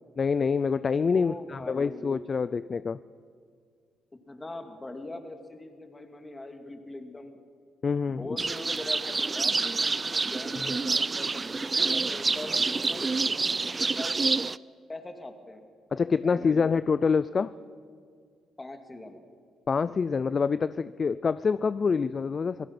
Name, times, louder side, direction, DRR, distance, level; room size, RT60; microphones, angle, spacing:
voice 1, 0.2-3.0 7.8-8.3 10.6-10.7 15.9-17.5 19.7-22.7, left 5 dB, 40° left, 15 dB, 0.4 m, -26 dB
voice 2, 1.1-2.1 4.3-7.4 8.2-14.3 14.9-15.6 16.2-16.7 18.6-19.2, left 2 dB, 20° left, 6 dB, 2.4 m, -41 dB
sound 1, 8.4-14.6, right 4 dB, 30° right, 0.4 m, -28 dB
26.0 x 17.0 x 6.0 m, 2.1 s
cardioid pair, 90°, 0 cm